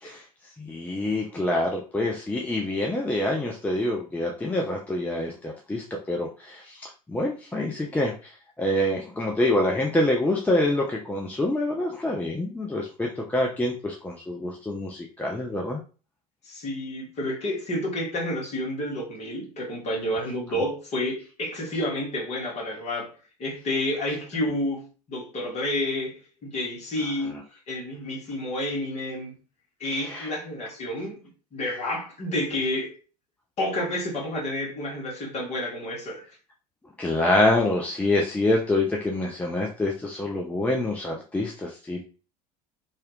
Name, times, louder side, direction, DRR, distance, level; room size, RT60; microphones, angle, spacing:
voice 1, 0.6-15.8 27.2-27.4 29.9-30.3 37.0-42.0, left 1 dB, 5° left, 0.4 m, -26 dB
voice 2, 16.4-23.1 23.4-24.8 25.1-26.1 26.4-27.4 27.7-29.3 29.8-31.2 31.5-32.9 33.6-36.2, left 1 dB, 35° left, 1.4 m, -29 dB
2.8 x 2.4 x 3.1 m
figure-of-eight pair, 70°, 20 cm